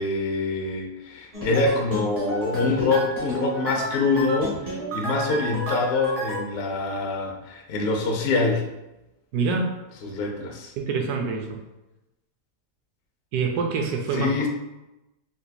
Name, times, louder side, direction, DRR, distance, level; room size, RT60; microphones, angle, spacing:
voice 1, 0.0-8.6 10.0-10.7 14.1-14.5, left 3 dB, 80° left, 1 dB, 0.5 m, -25 dB
sound 1, 1.3-6.4, equal, 45° right, 1.2 m, -31 dB
voice 2, 9.3-9.7 10.8-11.6 13.3-14.3, right 4 dB, 75° right, 3 dB, 1.0 m, -25 dB
4.0 x 2.7 x 2.2 m, 0.97 s
omnidirectional pair, 1.8 m